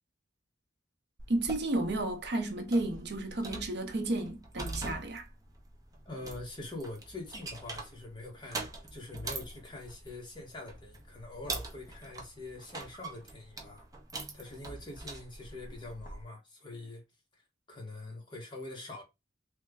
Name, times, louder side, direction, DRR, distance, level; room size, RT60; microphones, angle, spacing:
sound 1, 1.2-16.2, right 2 dB, 20° right, 0.6 m, -44 dB
voice 1, 1.3-5.2, right 2 dB, 60° right, 0.7 m, -32 dB
voice 2, 6.0-13.9 14.3-17.0 17.3-17.4 17.7-19.0, left 2 dB, 25° left, 1.0 m, -44 dB
3.2 x 2.1 x 3.4 m
head